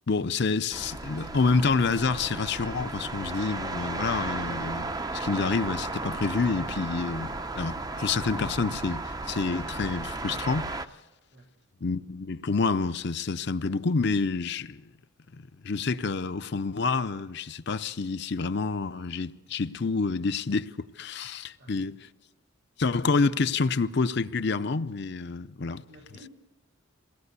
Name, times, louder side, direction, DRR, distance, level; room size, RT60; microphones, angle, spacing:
voice 1, 0.1-10.7 11.8-14.8 15.4-22.0 22.8-25.8, left 4 dB, 55° left, 0.6 m, -28 dB
sound 1, 0.7-10.9, right 2 dB, 20° right, 0.6 m, -34 dB
voice 2, 21.6-21.9 25.9-26.3, right 1 dB, 65° right, 2.7 m, -52 dB
22.5 x 17.5 x 8.2 m
head